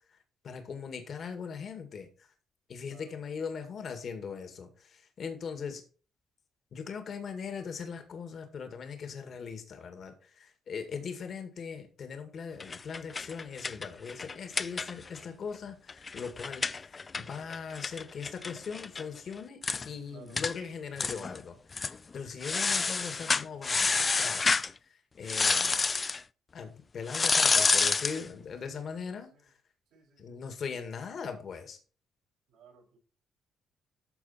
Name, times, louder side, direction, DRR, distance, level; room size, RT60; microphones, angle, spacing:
voice 1, 0.4-2.1 2.7-5.8 6.7-19.6 19.8-25.8 26.5-29.5 30.2-31.8, left 6 dB, 55° left, 6 dB, 2.0 m, -40 dB
sound 1, 12.6-15.2 15.5-15.6 15.9-19.0 19.3-19.4 19.6-19.9 20.4-20.5 21.0-21.4 21.7-22.0 22.4-24.7 25.3-26.2 27.1-28.2, left 4 dB, 30° left, 0.4 m, -28 dB
voice 2, 20.1-20.5 28.6-29.5 29.9-30.6 32.5-33.0, right 6 dB, 85° right, -2 dB, 5.6 m, -57 dB
13.0 x 4.5 x 4.3 m, 0.38 s
cardioid pair, 90°, 0 cm